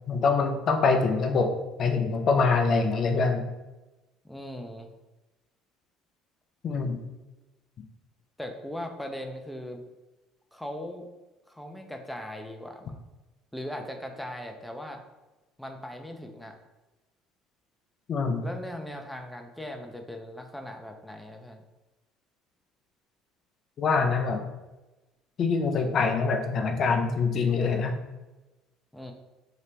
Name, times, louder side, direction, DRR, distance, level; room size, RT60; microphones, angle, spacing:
voice 1, 0.1-1.5 1.8-3.4 6.6-7.0 18.1-18.5 23.8-24.4 25.4-28.0, left 4 dB, 50° left, 5 dB, 0.5 m, -24 dB
voice 2, 4.2-4.9 8.4-9.8 10.5-11.1 11.5-13.0 13.5-15.0 15.6-16.6 18.4-21.6 28.9-29.1, left 1 dB, 5° left, 4 dB, 0.6 m, -39 dB
2.8 x 2.8 x 3.3 m, 1.1 s
hypercardioid pair, 65°, 0 cm